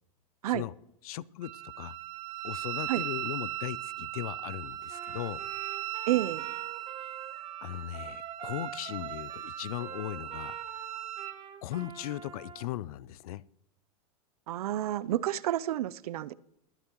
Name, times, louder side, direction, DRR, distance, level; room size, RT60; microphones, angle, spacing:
voice 1, 1.0-2.0 2.4-5.4 7.6-10.6 11.6-13.4, left 14 dB, 75° left, 0.5 m, -38 dB
Wind instrument woodwind instrument, 1.4-11.4, right 13 dB, 60° right, 1.4 m, -38 dB
Trumpet, 4.9-12.7, right 8 dB, 30° right, 1.4 m, -45 dB
voice 2, 6.1-6.4 14.5-16.3, right 13 dB, 80° right, 0.6 m, -30 dB
22.0 x 9.0 x 3.0 m
supercardioid pair, 125°, 19 cm